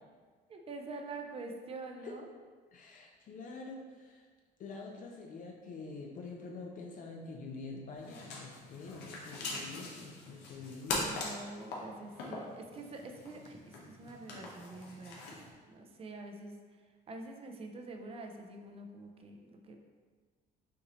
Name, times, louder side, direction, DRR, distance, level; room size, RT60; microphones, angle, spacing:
voice 1, 0.5-2.3 11.0-15.2 15.7-19.8, right 2 dB, 35° right, 3 dB, 0.6 m, -46 dB
voice 2, 2.7-4.2 4.6-11.3, left 3 dB, 50° left, 0 dB, 0.6 m, -46 dB
sound 1, 8.0-15.5, left 2 dB, 85° left, 1.0 m, -42 dB
5.9 x 2.7 x 3.1 m, 1.5 s
cardioid pair, 110°, 17 cm